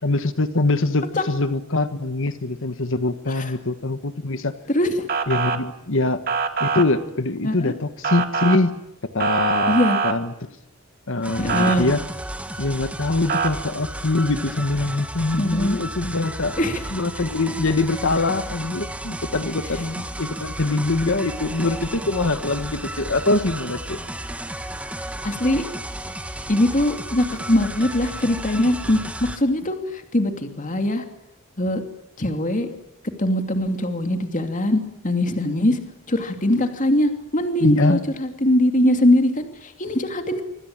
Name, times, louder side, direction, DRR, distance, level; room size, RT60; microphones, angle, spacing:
voice 1, 0.0-4.5 5.3-6.2 6.6-8.7 9.1-9.7 10.0-10.5 11.1-12.0 12.6-16.5 16.9-24.0 37.6-38.0, left 2 dB, 60° left, 10 dB, 1.5 m, -23 dB
voice 2, 4.7-5.1 7.4-7.7 9.7-10.0 11.4-11.9 15.4-15.8 16.6-16.8 25.2-25.6 26.5-31.0 31.6-31.8 32.2-32.7 33.2-35.8 36.1-40.4, left 1 dB, 35° left, 6 dB, 2.7 m, -21 dB
Motor vehicle (road) / Siren, 5.1-5.6 6.3-6.8 8.0-8.6 9.2-10.1 11.5-11.8 13.3-13.5, right 5 dB, 40° right, 2.3 m, -23 dB
sound 1, 11.2-29.4, right 1 dB, 5° right, 1.8 m, -33 dB
26.0 x 26.0 x 8.9 m, 0.83 s
head